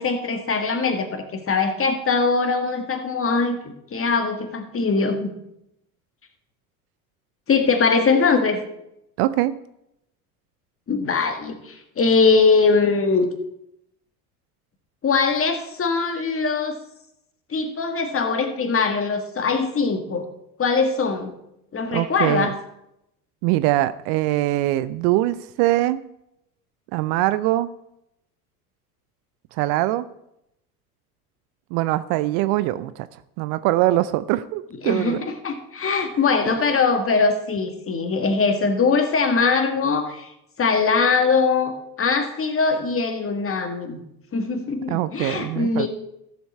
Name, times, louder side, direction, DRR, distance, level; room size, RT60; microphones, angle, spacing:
voice 1, 0.0-3.6 3.9-5.3 7.5-8.6 10.9-13.3 15.0-16.8 17.5-20.3 20.6-21.3 21.7-22.5 34.8-40.3 40.6-44.0 44.3-45.9, left 4 dB, 30° left, 6 dB, 1.7 m, -21 dB
voice 2, 9.2-9.5 21.9-22.5 23.4-26.0 26.9-27.7 29.6-30.0 31.7-33.1 33.4-35.2 44.9-45.9, right 16 dB, 55° right, 16 dB, 0.6 m, -22 dB
14.5 x 7.0 x 4.2 m, 0.81 s
hypercardioid pair, 75°, 45 cm